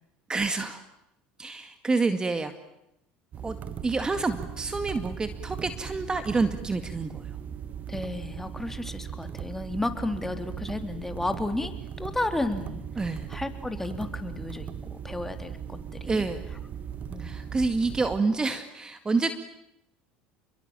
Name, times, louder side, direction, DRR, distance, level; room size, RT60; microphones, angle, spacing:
voice 1, 0.3-0.8 1.4-2.5 3.4-3.6 3.8-7.3 13.0-13.3 16.1-16.4 17.2-19.3, right 3 dB, 20° right, 9 dB, 2.1 m, -28 dB
sound 1, 3.3-18.2, right 8 dB, 45° right, 2.1 m, -38 dB
voice 2, 7.9-11.7 12.0-16.2 16.5-16.6 17.1-17.4, left 2 dB, 10° left, 7 dB, 3.6 m, -33 dB
29.5 x 22.5 x 9.1 m, 0.84 s
hypercardioid pair, 85°, 4 cm